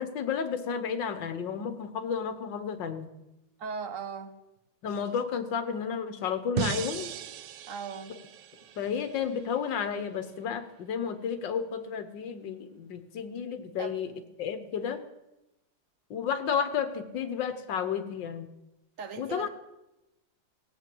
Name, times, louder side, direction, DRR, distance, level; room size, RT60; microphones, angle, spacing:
voice 1, 0.0-3.1 4.8-7.1 8.8-14.1 14.4-15.0 16.1-18.5 19.2-19.5, left 7 dB, 75° left, 9 dB, 1.8 m, -32 dB
voice 2, 3.6-4.4 7.7-8.2 13.8-13.9 19.0-19.5, right 6 dB, 50° right, 8 dB, 1.4 m, -37 dB
sound 1, 6.6-9.7, right 10 dB, 75° right, 1.4 m, -37 dB
17.0 x 7.9 x 7.8 m, 0.95 s
omnidirectional pair, 2.0 m